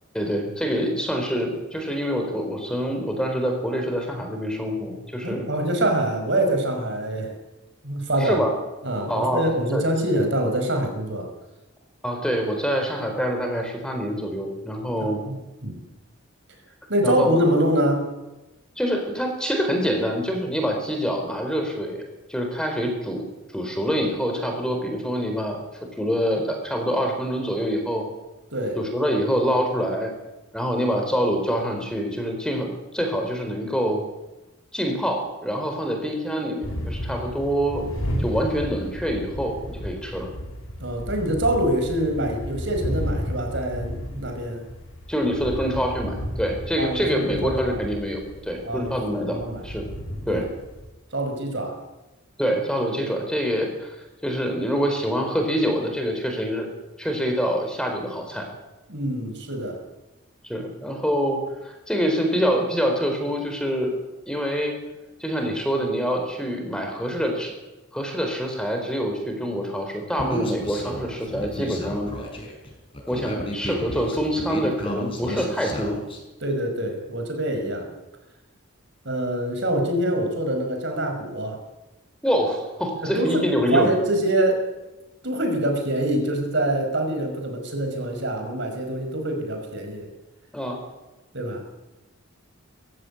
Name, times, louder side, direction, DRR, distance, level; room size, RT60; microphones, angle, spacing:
voice 1, 0.1-5.5 8.2-8.5 9.1-9.4 9.7-9.8 12.0-15.2 17.0-17.4 18.8-22.0 22.3-23.2 23.5-25.6 26.0-28.0 28.8-30.1 30.5-32.7 32.9-34.0 34.7-37.9 38.2-40.3 45.1-49.9 50.3-50.5 52.4-54.0 54.2-56.7 57.0-58.5 60.4-63.9 64.3-64.7 65.2-67.5 67.9-72.1 73.1-76.0 82.2-83.9 90.5-90.8, equal, 5° left, 3 dB, 4.2 m, -25 dB
voice 2, 5.2-7.3 7.8-8.4 8.8-11.3 15.0-15.8 16.9-18.1 28.5-28.8 40.8-44.6 46.8-47.8 48.6-48.9 49.2-49.6 50.3-50.5 51.1-51.8 58.9-59.8 76.4-77.9 79.1-81.6 83.0-84.7 85.2-90.1 91.3-91.6, right 1 dB, 55° right, 4 dB, 5.5 m, -25 dB
sound 1, 36.6-50.9, equal, 75° left, 7.5 m, -33 dB
Human voice, 70.2-76.2, equal, 25° left, 5.4 m, -32 dB
22.5 x 15.5 x 9.9 m, 1.0 s
head